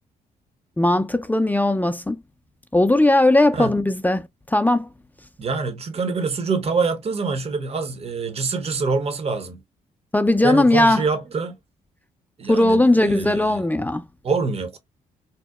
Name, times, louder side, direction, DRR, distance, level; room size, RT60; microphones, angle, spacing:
voice 1, 0.8-2.2 2.7-4.9 10.1-11.0 12.5-14.0, left 1 dB, 10° left, 0.3 m, -18 dB
voice 2, 5.4-9.6 10.4-11.5 12.4-13.6 14.2-14.8, right 4 dB, 35° right, 0.6 m, -25 dB
2.8 x 2.0 x 2.2 m
hypercardioid pair, 45°, 19 cm